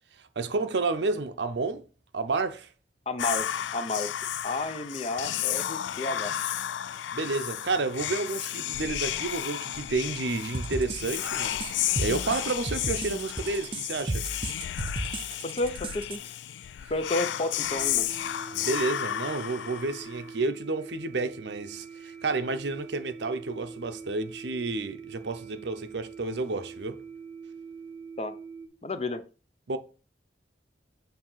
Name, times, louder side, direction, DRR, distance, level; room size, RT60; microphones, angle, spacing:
voice 1, 0.2-1.8 2.1-2.7 7.1-14.2 18.5-27.0 29.7-29.8, right 3 dB, 80° right, 0.7 m, -30 dB
voice 2, 3.1-3.5 3.7-4.1 4.4-6.5 15.5-16.3 16.9-18.1 28.2-28.3 28.8-29.2, left 2 dB, 35° left, 0.6 m, -31 dB
Whispering, 3.2-20.3, left 11 dB, 90° left, 0.3 m, -33 dB
sound 1, 10.5-16.2, right 2 dB, 30° right, 0.6 m, -34 dB
sound 2, 17.7-28.7, right 5 dB, 5° left, 1.4 m, -44 dB
7.3 x 2.8 x 5.6 m
head